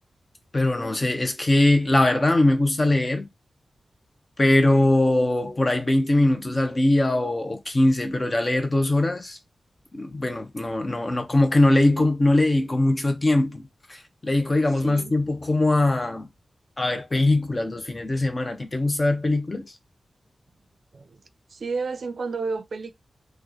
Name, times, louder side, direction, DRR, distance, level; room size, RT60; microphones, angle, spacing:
voice 1, 0.5-3.3 4.4-9.4 9.9-13.7 14.2-16.3 16.8-19.7, left 2 dB, 35° left, 0.7 m, -21 dB
voice 2, 14.8-15.1 20.9-21.2 21.5-22.9, right 4 dB, 70° right, 0.4 m, -31 dB
3.0 x 2.1 x 3.8 m
wide cardioid pair, 70°, 0 cm